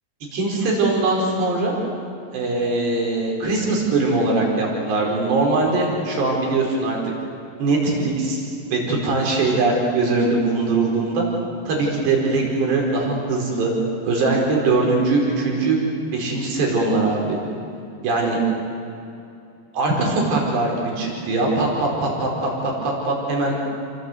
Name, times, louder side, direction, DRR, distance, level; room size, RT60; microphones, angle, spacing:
voice 1, 0.3-1.7 2.3-7.0 7.6-8.4 8.7-11.2 11.7-13.7 14.0-15.8 16.1-17.4 18.0-18.4 19.7-23.6, right 3 dB, 85° right, -1 dB, 7.1 m, -21 dB
29.5 x 25.0 x 8.2 m, 2.7 s
omnidirectional pair, 4.7 m